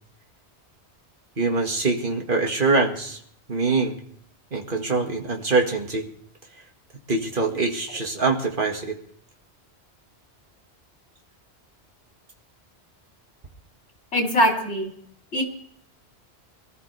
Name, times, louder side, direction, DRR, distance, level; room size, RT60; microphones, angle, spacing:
voice 1, 1.4-3.2 3.5-4.0 4.5-6.1 7.1-9.0, right 3 dB, 50° right, 2 dB, 2.0 m, -24 dB
voice 2, 14.1-14.9 15.3-15.4, equal, 85° left, 0 dB, 3.4 m, -21 dB
23.0 x 13.5 x 3.3 m, 0.63 s
omnidirectional pair, 1.1 m